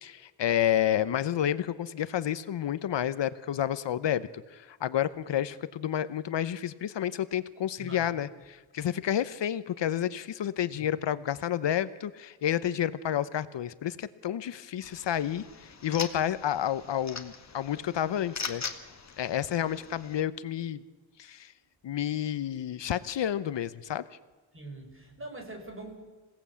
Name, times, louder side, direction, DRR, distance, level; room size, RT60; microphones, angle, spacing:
voice 1, 0.0-18.6 19.2-20.8 21.2-21.5 21.8-24.0, left 10 dB, 65° left, 15 dB, 0.9 m, -30 dB
voice 2, 7.8-8.1 10.7-10.9 24.5-26.0, right 2 dB, 25° right, 4 dB, 5.2 m, -43 dB
sound 1, 14.8-20.2, left 5 dB, 35° left, 1.7 m, -41 dB
27.0 x 17.5 x 8.5 m, 1.3 s
wide cardioid pair, 170°, 47 cm